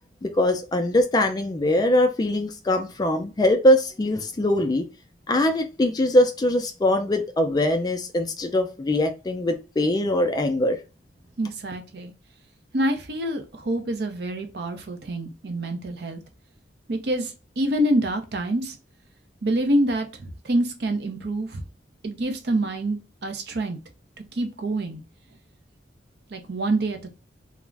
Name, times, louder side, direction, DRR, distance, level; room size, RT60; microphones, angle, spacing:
voice 1, 0.2-4.9 5.3-10.8, left 1 dB, 20° left, 0.3 m, -22 dB
voice 2, 11.4-12.1 12.7-16.2 16.9-18.8 19.4-21.6 22.0-23.8 24.3-25.0 26.3-27.1, right 1 dB, 60° right, 0.5 m, -26 dB
2.4 x 2.0 x 3.2 m
head